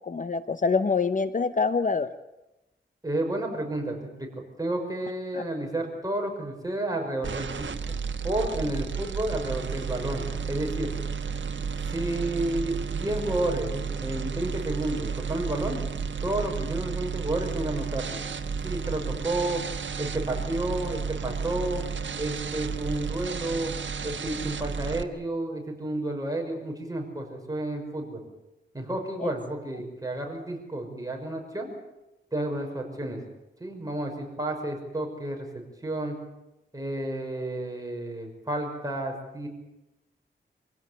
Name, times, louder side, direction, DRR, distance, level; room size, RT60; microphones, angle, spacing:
voice 1, 0.0-2.1 5.3-5.4 29.2-29.3, left 4 dB, 40° left, 11 dB, 0.9 m, -25 dB
voice 2, 3.0-4.3 4.6-8.0 8.2-10.9 11.8-15.8 16.2-18.2 18.6-19.6 20.0-21.8 22.2-23.7 24.0-28.2 28.7-31.7 32.3-33.2 33.6-36.2 36.7-39.5, right 1 dB, 20° right, 1 dB, 6.0 m, -31 dB
sound 1, 7.2-25.0, right 6 dB, 75° right, 1.3 m, -32 dB
24.5 x 16.5 x 8.5 m, 0.97 s
wide cardioid pair, 85°, 20 cm